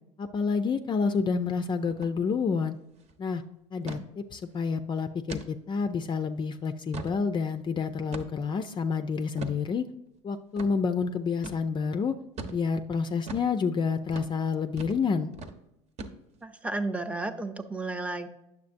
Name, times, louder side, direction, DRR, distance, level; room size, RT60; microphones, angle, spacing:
voice 1, 0.2-2.8 3.2-3.4 3.7-9.9 10.2-12.2 12.5-15.3, left 5 dB, 30° left, 8 dB, 0.4 m, -29 dB
Box Lifted and Put Down, 1.9-2.1 2.4-2.5 2.9-3.2 3.9-4.1 4.6-4.7 5.3-5.5 6.0-6.1 6.7-7.2 8.1-8.5 9.4-9.6 10.6-10.7 11.4-11.6 12.4-12.6 13.3-13.5 14.1-14.3 14.8-15.0 15.3-15.6 16.0-16.4, right 3 dB, 45° right, 0.9 m, -39 dB
voice 2, 16.4-18.3, right 2 dB, 10° right, 8 dB, 0.7 m, -33 dB
9.3 x 7.0 x 2.6 m, 0.89 s
hypercardioid pair, 85°, 16 cm